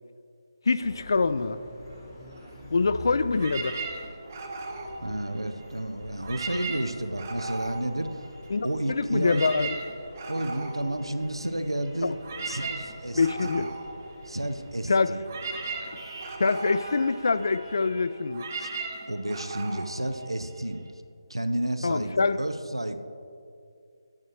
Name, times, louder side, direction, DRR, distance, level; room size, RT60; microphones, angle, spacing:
voice 1, 0.7-1.6 2.7-3.8 8.5-9.8 12.0-12.2 13.1-13.7 14.9-15.2 16.4-18.4 21.8-22.4, left 4 dB, 50° left, 14 dB, 0.3 m, -25 dB
sound 1, 0.8-14.8, left 2 dB, 30° left, 1.0 m, -48 dB
sound 2, 0.9-18.0, right 1 dB, 60° right, 2.0 m, -49 dB
sound 3, 3.3-5.8 6.1-8.7 9.0-20.9, right 3 dB, 35° right, 0.8 m, -38 dB
voice 2, 5.0-8.2 8.6-9.4 10.3-12.1 12.5-13.2 13.6-13.7 14.3-15.2 18.6-18.7 19.1-20.8 21.3-23.0, right 1 dB, 85° right, 9 dB, 0.6 m, -31 dB
9.7 x 8.8 x 3.1 m, 2.4 s
figure-of-eight pair, 150°, 3 cm